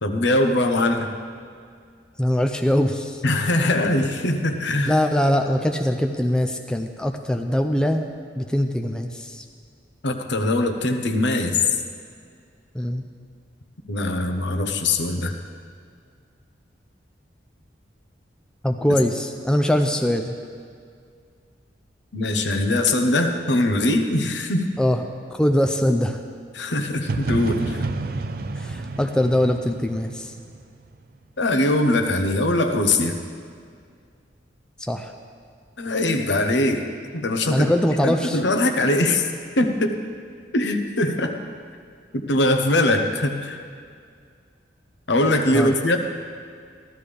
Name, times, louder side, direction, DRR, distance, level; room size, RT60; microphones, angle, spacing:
voice 1, 0.0-1.1 3.2-4.9 10.0-11.5 13.9-15.3 18.9-19.0 22.1-24.7 26.5-27.8 31.4-33.1 35.8-37.7 38.0-39.3 39.6-40.0 40.5-41.4 42.1-43.6 45.1-46.0, left 1 dB, 75° left, 6 dB, 0.9 m, -22 dB
voice 2, 2.2-3.2 4.8-9.4 12.7-13.0 18.6-20.4 24.8-25.0 25.3-26.2 28.6-30.3 34.8-35.1 37.5-38.4 45.5-45.7, left 1 dB, 5° left, 4 dB, 0.4 m, -22 dB
sound 1, 27.1-30.9, right 3 dB, 50° right, 0.5 m, -29 dB
15.0 x 12.5 x 3.4 m, 2.2 s
head